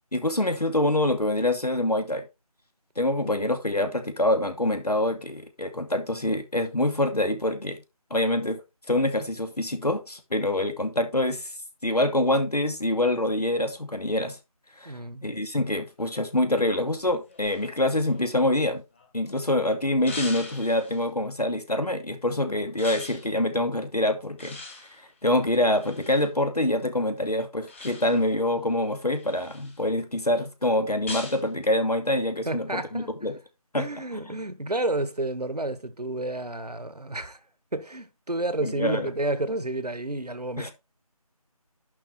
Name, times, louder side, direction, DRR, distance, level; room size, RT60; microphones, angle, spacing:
voice 1, 0.1-2.2 3.0-7.8 8.1-8.6 8.9-11.5 11.8-14.4 14.8-18.8 19.1-24.6 24.9-33.4 33.7-33.9 38.6-39.1 40.6-40.7, left 1 dB, 85° left, 2.4 m, -25 dB
voice 2, 3.2-3.5 14.8-15.3 32.5-33.1 33.8-37.4 37.7-40.7, right 2 dB, 85° right, 1.4 m, -30 dB
sound 1, 16.7-19.3 20.1-21.1 22.8-23.3 24.4-26.3 27.7-28.3 28.9-29.8 31.1-31.5, left 3 dB, 20° left, 1.9 m, -41 dB
11.5 x 5.2 x 4.3 m
figure-of-eight pair, 165°, 20 cm